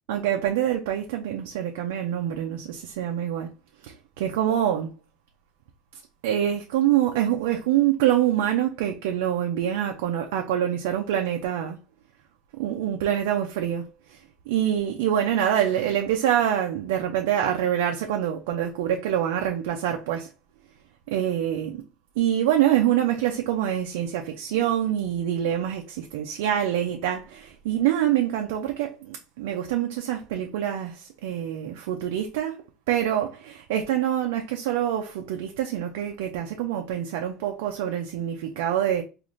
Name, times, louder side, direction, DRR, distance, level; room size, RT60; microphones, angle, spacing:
voice 1, 0.1-3.5 3.8-4.9 5.9-11.8 12.6-14.2 14.5-20.3 21.1-21.8 22.2-32.6 32.9-39.0, right 11 dB, 85° right, 0.4 m, -25 dB
3.8 x 2.5 x 3.1 m
supercardioid pair, 115°, 0 cm